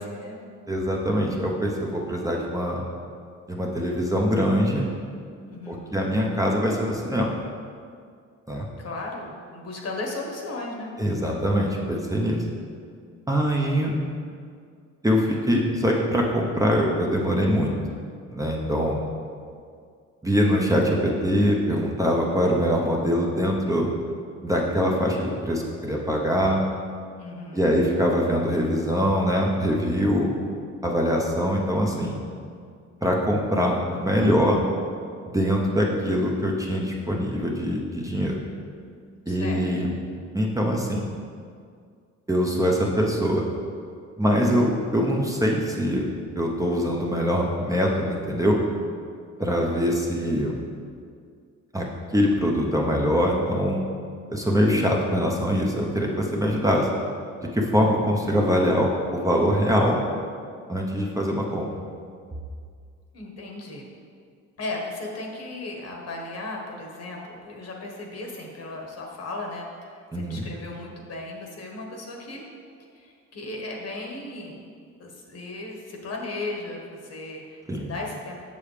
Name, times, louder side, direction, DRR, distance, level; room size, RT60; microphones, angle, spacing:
voice 1, 0.1-0.4 5.5-6.0 8.8-10.9 27.2-27.7 39.3-39.7 63.1-63.9 64.6-72.4 72.9-78.4, left 2 dB, 55° left, 0 dB, 1.4 m, -36 dB
voice 2, 0.7-2.8 3.5-4.8 5.7-7.3 8.5-8.7 11.0-12.4 13.3-13.9 15.0-17.7 18.3-19.0 20.2-23.9 24.4-26.6 27.5-30.3 30.8-32.1 33.0-34.6 35.2-38.4 39.3-39.9 40.3-41.1 42.3-43.4 44.2-46.0 46.3-48.6 49.4-50.6 51.7-51.9 52.1-53.8 54.3-56.9 57.5-60.0 60.7-61.7 70.1-70.4 77.7-77.9, equal, 10° right, -2 dB, 0.9 m, -23 dB
7.0 x 7.0 x 3.3 m, 2.2 s
cardioid pair, 90°, 30 cm